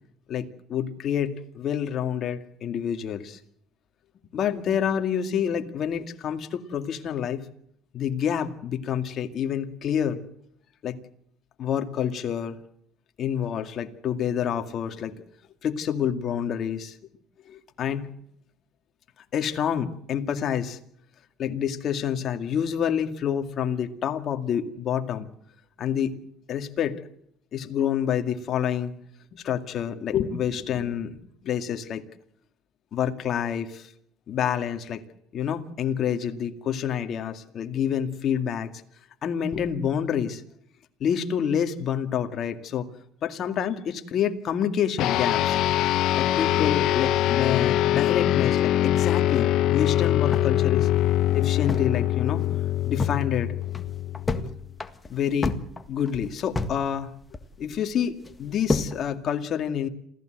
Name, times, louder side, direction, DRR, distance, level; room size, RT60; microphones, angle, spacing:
voice 1, 0.3-3.4 4.3-7.5 7.9-10.2 10.8-11.0 11.6-12.6 13.2-15.1 15.6-17.0 17.5-18.1 19.3-20.8 21.4-25.3 25.8-26.1 26.5-27.0 27.5-29.0 29.3-31.2 31.4-32.0 32.9-33.9 34.3-35.0 35.3-38.7 39.2-40.4 41.0-42.9 43.2-45.6 46.2-50.9 51.3-52.5 52.9-53.5 54.4-54.5 55.1-57.1 57.6-59.9, left 8 dB, 50° left, 6 dB, 2.2 m, -28 dB
sound 1, 45.0-54.7, left 13 dB, 65° left, 1.0 m, -23 dB
sound 2, 50.3-52.0 52.3-52.4 52.7-53.2 53.6-54.5 54.8-56.8 57.1-57.8 58.3-59.0, left 3 dB, 20° left, 1.7 m, -30 dB
27.5 x 15.5 x 7.9 m, 0.70 s
cardioid pair, 115°, 0 cm